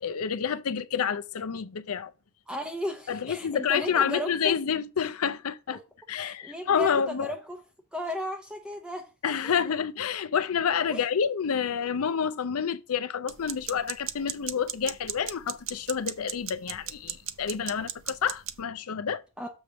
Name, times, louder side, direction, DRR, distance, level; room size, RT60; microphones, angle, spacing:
voice 1, 0.0-2.1 3.1-5.8 6.1-7.3 9.2-19.2, left 7 dB, 70° left, 0.5 m, -28 dB
voice 2, 2.5-4.6 5.7-5.8 6.2-7.6 7.9-9.1 9.4-9.7 10.9-11.1 19.4-19.5, left 1 dB, 5° right, 0.7 m, -35 dB
sound 1, 13.3-18.6, right 11 dB, 60° right, 0.6 m, -36 dB
7.1 x 3.5 x 6.3 m
head